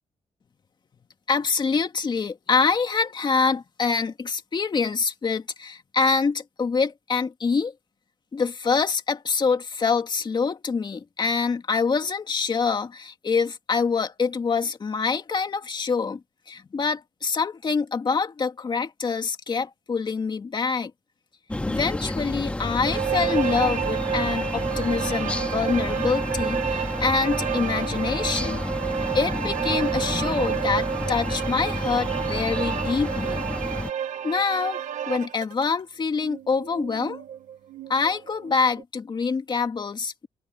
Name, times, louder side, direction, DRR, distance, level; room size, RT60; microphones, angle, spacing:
voice 1, 1.3-7.7 8.3-16.2 16.5-20.9 21.7-28.6 29.1-33.5 34.2-37.2 37.9-40.3, left 5 dB, 35° left, 2.3 m, -25 dB
sound 1, 21.5-33.9, left 1 dB, 10° left, 2.2 m, -30 dB
sound 2, 22.8-35.7 36.2-38.8, right 9 dB, 70° right, 1.3 m, -30 dB
cardioid pair, 130°, 13 cm